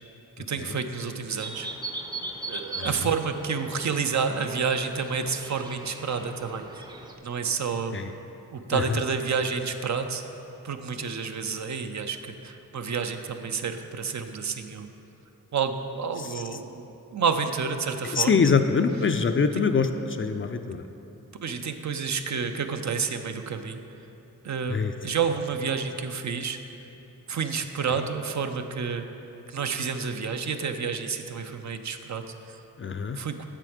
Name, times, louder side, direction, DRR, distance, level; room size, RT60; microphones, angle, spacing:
voice 1, 0.4-1.7 2.4-6.9 7.2-8.0 8.5-10.2 10.6-14.9 15.5-18.5 19.5-19.6 21.4-23.8 24.4-26.6 27.3-29.1 29.5-32.6 33.2-33.5, right 5 dB, 55° right, 7 dB, 0.6 m, -29 dB
sound 1, 1.4-7.1, right 2 dB, 10° right, 0.6 m, -39 dB
voice 2, 18.1-20.8 24.7-24.9 32.8-33.2, left 5 dB, 35° left, 8 dB, 0.4 m, -24 dB
7.5 x 7.0 x 5.0 m, 3.0 s
cardioid pair, 70°, 34 cm